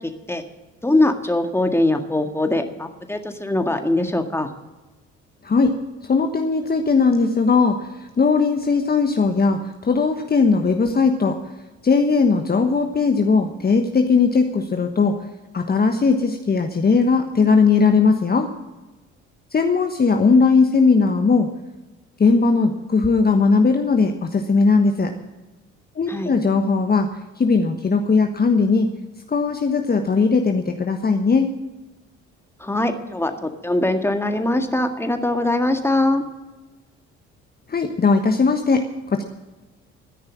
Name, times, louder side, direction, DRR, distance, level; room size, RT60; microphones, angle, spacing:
voice 1, 0.8-4.5 26.1-26.3 32.6-36.3, left 1 dB, 5° left, 6 dB, 1.8 m, -21 dB
voice 2, 5.4-5.8 6.0-11.4 11.8-15.2 15.5-18.5 19.5-21.5 22.2-25.1 26.0-27.1 27.4-28.9 29.3-31.5 37.7-39.2, left 4 dB, 25° left, 5 dB, 1.2 m, -18 dB
13.0 x 10.5 x 7.4 m, 1.1 s
figure-of-eight pair, 50°, 35 cm